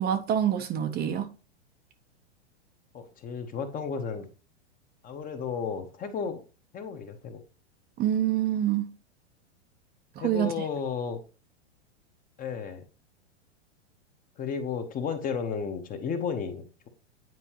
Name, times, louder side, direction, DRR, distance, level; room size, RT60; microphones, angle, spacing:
voice 1, 0.0-1.3 8.0-8.9 10.2-10.5, right 10 dB, 30° right, 0.8 m, -26 dB
voice 2, 2.9-4.3 5.0-6.4 6.7-7.4 10.2-11.2 12.4-12.8 14.4-16.9, left 6 dB, 25° left, 1.1 m, -33 dB
9.4 x 4.4 x 3.0 m
hypercardioid pair, 120°, 35 cm